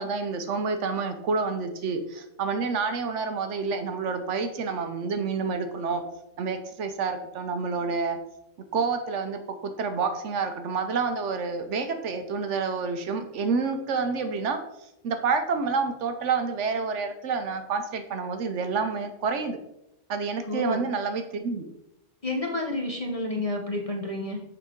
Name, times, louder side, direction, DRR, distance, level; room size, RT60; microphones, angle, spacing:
voice 1, 0.0-6.0 6.4-8.2 8.7-14.6 15.0-19.6 20.1-21.6, right 5 dB, 65° right, 7 dB, 0.9 m, -28 dB
voice 2, 20.4-20.9 22.2-24.4, left 2 dB, 30° left, 0 dB, 0.7 m, -30 dB
6.7 x 5.2 x 3.6 m, 0.86 s
omnidirectional pair, 1.4 m